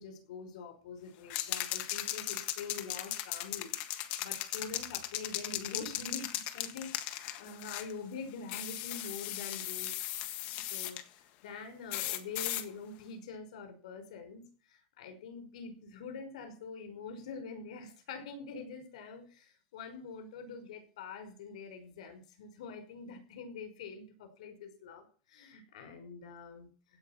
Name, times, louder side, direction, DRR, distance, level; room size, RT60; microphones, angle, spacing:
voice 1, 0.0-10.1 10.4-27.0, left 5 dB, 90° left, 8 dB, 5.5 m, -45 dB
sound 1, 1.3-7.9 8.5-11.0 11.9-12.7, left 14 dB, 45° left, 1.6 m, -37 dB
16.5 x 6.0 x 8.8 m, 0.39 s
supercardioid pair, 165°, 4 cm